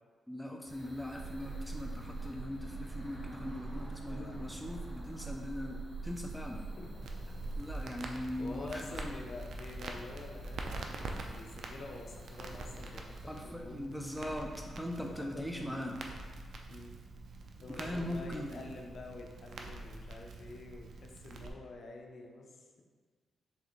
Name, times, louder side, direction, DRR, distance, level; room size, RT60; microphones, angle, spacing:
voice 1, 0.3-6.7 7.6-9.0 13.3-16.0 17.7-18.6, left 1 dB, ahead, 2 dB, 0.3 m, -40 dB
sound 1, 0.7-13.5, left 1 dB, 15° right, 1.2 m, -53 dB
sound 2, 1.1-7.6, right 3 dB, 90° right, 1.1 m, -43 dB
voice 2, 4.0-4.5 6.5-7.1 8.4-14.1 15.0-15.9 16.7-17.0 17.6-22.8, left 2 dB, 50° left, 2 dB, 0.6 m, -48 dB
Crackle, 7.0-21.5, right 2 dB, 70° right, 0.4 m, -45 dB
4.8 x 3.2 x 3.1 m, 1.5 s
cardioid pair, 120°, 0 cm